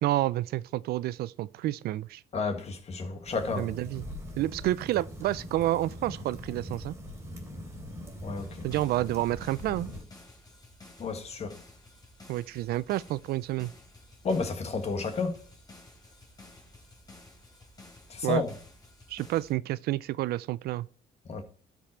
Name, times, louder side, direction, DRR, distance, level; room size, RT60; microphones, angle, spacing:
voice 1, 0.0-2.2 3.6-4.1 4.4-6.9 8.6-9.9 12.3-13.7 18.2-18.4 19.1-20.9, right 15 dB, 70° right, 0.4 m, -29 dB
voice 2, 2.3-3.7 8.2-8.6 11.0-11.6 14.2-15.4 18.1-18.5 21.3-21.4, left 4 dB, 40° left, 1.7 m, -31 dB
fire at a picnic, 3.2-10.0, equal, 15° right, 3.3 m, -42 dB
sound 1, 8.4-19.5, left 2 dB, 25° left, 3.2 m, -53 dB
12.0 x 5.3 x 4.5 m
cardioid pair, 110°, 17 cm